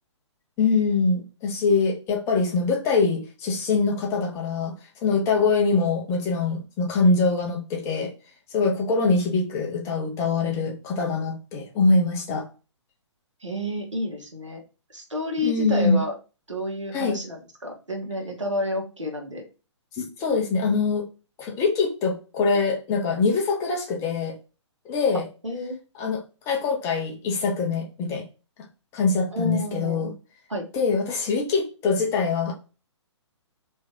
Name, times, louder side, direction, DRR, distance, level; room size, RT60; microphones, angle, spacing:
voice 1, 0.6-4.7 5.0-8.1 8.5-12.5 15.4-16.1 16.9-17.2 19.9-21.1 21.4-24.4 24.9-25.2 26.0-26.2 26.5-28.2 28.9-30.1 30.7-32.5, left 4 dB, 20° left, 0 dB, 0.9 m, -23 dB
voice 2, 13.4-14.6 14.9-16.1 16.5-19.4 25.4-25.8 29.3-30.1 30.5-30.6, left 1 dB, 80° right, 2 dB, 1.3 m, -30 dB
3.2 x 3.1 x 3.7 m, 0.32 s
figure-of-eight pair, 125°, 16 cm